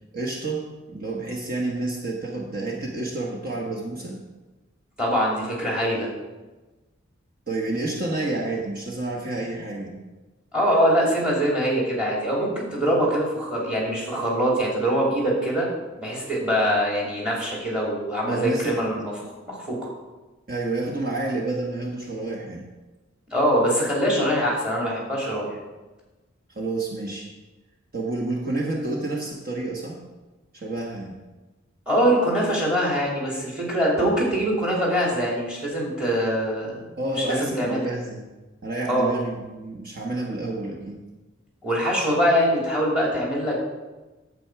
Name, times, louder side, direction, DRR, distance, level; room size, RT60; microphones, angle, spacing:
voice 1, 0.1-4.2 7.5-10.0 18.3-18.9 20.5-22.6 26.5-27.3 27.9-30.0 30.5-31.2 37.0-38.2 38.6-41.0, right 2 dB, 45° right, -1 dB, 1.2 m, -29 dB
voice 2, 5.0-6.1 10.5-15.7 16.0-19.9 23.3-25.6 31.9-36.8 37.1-37.9 38.9-39.1 41.6-43.6, equal, 5° right, -3 dB, 2.9 m, -23 dB
9.1 x 7.8 x 4.7 m, 1.2 s
head